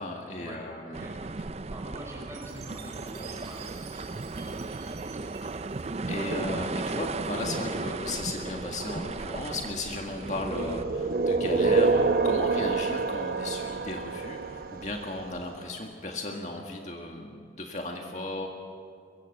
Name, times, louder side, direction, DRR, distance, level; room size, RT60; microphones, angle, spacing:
voice 1, 0.0-1.0 6.1-18.5, left 2 dB, 40° left, 1 dB, 1.8 m, -35 dB
voice 2, 0.9-1.4 1.7-5.2, right 1 dB, 15° right, -1 dB, 5.9 m, -46 dB
sound 1, 0.9-10.8, right 3 dB, 35° right, 0.5 m, -35 dB
Chime, 2.3-6.7, right 8 dB, 75° right, 4.0 m, -50 dB
sound 2, 10.2-15.2, right 4 dB, 55° right, 0.9 m, -27 dB
23.0 x 23.0 x 6.7 m, 2.3 s
head